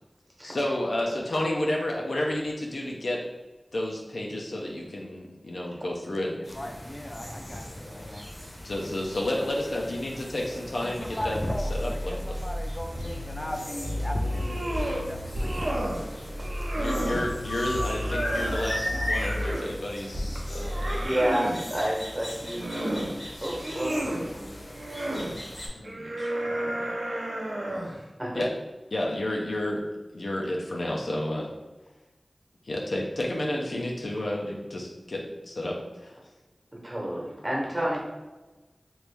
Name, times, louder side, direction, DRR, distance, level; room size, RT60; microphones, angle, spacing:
voice 1, 0.4-3.2 3.7-6.3 8.6-11.4 11.7-12.3 16.8-21.1 25.7-26.9 28.3-28.5 28.9-29.8 30.1-31.5 32.7-36.2, left 1 dB, 90° left, -2 dB, 0.4 m, -31 dB
voice 2, 6.3-8.3 10.8-16.5 18.5-19.4, equal, 25° left, 3 dB, 0.4 m, -37 dB
sound 1, 6.4-25.7, left 1 dB, 60° left, 0.8 m, -39 dB
sound 2, 11.5-21.0, left 1 dB, 50° right, 0.9 m, -33 dB
sound 3, 14.1-15.0 15.3-16.0 16.4-17.3 17.7-19.8 20.2-21.6 22.3-23.1 23.5-24.3 24.7-25.3 25.8-28.0, right 1 dB, 75° right, 0.6 m, -32 dB
voice 3, 21.0-22.8 23.4-24.5 28.2-28.4 36.7-38.0, right 1 dB, 25° right, -3 dB, 1.0 m, -30 dB
3.1 x 2.5 x 3.3 m, 1.1 s
wide cardioid pair, 60°, 0 cm